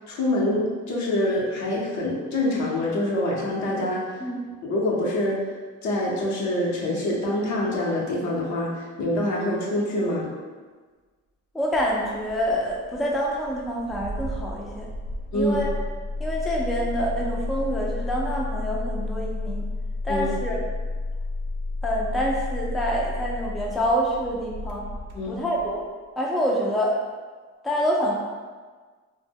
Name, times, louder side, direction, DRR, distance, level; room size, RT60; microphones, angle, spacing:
voice 1, 0.1-4.2 4.6-5.4 5.8-10.3 15.3-15.6 20.1-20.3 25.1-25.4, left 1 dB, 65° left, -4 dB, 0.7 m, -25 dB
voice 2, 11.5-14.9 15.3-15.7 16.2-19.6 20.0-20.6 21.8-24.9 25.3-25.8 26.2-27.0 27.6-28.1, equal, ahead, -3 dB, 0.3 m, -26 dB
Engine starting, 11.7-25.8, left 2 dB, 80° right, 0.5 m, -32 dB
2.1 x 2.0 x 3.4 m, 1.4 s
cardioid pair, 90°, 30 cm